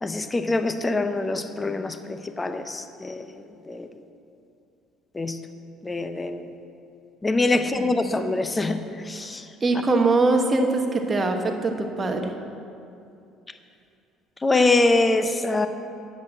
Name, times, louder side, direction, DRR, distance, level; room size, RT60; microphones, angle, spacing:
voice 1, 0.0-3.9 5.1-5.4 5.8-6.5 7.2-9.5 14.4-15.7, left 2 dB, 15° left, 9 dB, 0.5 m, -24 dB
voice 2, 9.6-12.3, right 3 dB, 20° right, 4 dB, 1.0 m, -22 dB
10.0 x 7.5 x 7.6 m, 2.6 s
cardioid pair, 150°, 0 cm